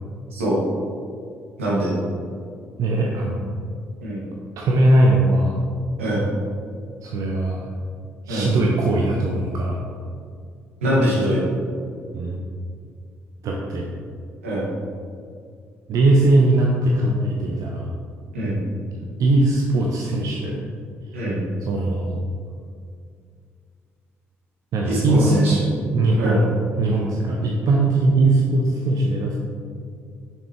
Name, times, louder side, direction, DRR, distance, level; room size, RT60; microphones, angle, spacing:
voice 1, 1.6-2.0 4.0-4.2 6.0-6.3 8.3-8.5 10.8-11.5 14.4-14.7 18.3-18.6 21.1-21.4 24.8-25.6 26.2-26.4, equal, 80° right, -6 dB, 1.5 m, -23 dB
voice 2, 2.8-3.4 4.6-5.6 7.0-7.6 8.3-9.8 12.1-12.4 13.4-13.9 15.9-17.9 19.2-20.6 21.7-22.2 24.7-25.5 25.8-26.4 26.8-29.3, right 2 dB, 55° right, -1 dB, 0.7 m, -20 dB
6.3 x 6.2 x 3.3 m, 2.2 s
figure-of-eight pair, 45°, 7 cm